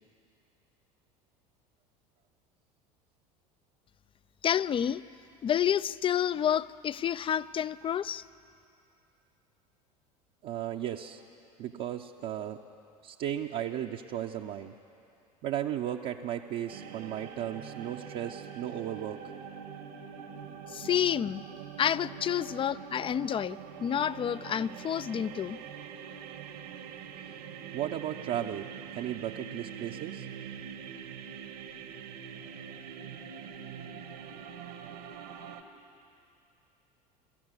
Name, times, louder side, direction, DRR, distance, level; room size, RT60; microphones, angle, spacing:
voice 1, 4.4-5.0 5.4-8.2 20.7-21.4 21.8-25.6, left 9 dB, 25° left, 18 dB, 0.4 m, -29 dB
voice 2, 10.4-11.2 11.6-12.6 13.0-14.7 15.4-19.2 27.7-30.3, right 11 dB, 55° right, 1 dB, 0.9 m, -35 dB
sound 1, 16.7-35.6, right 7 dB, 70° right, 1.7 m, -44 dB
23.0 x 14.0 x 8.3 m, 2.7 s
hypercardioid pair, 75°, 21 cm